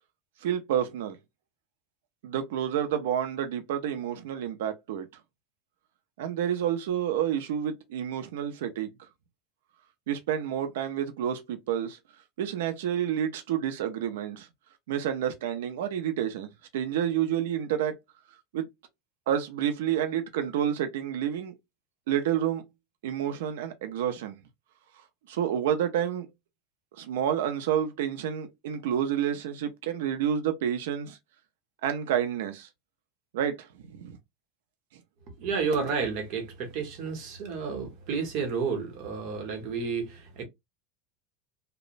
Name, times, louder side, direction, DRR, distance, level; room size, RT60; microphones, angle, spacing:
voice 1, 0.4-1.2 2.2-5.1 6.2-8.9 10.1-12.0 12.4-14.5 14.9-18.0 18.5-18.6 19.3-21.5 22.1-22.6 23.0-24.4 25.3-26.3 27.0-31.2 31.8-32.7 33.3-34.2, right 9 dB, 90° right, 0.5 m, -29 dB
voice 2, 35.4-40.4, right 5 dB, 40° right, 0.8 m, -31 dB
2.9 x 2.0 x 2.4 m
supercardioid pair, 175°, 0 cm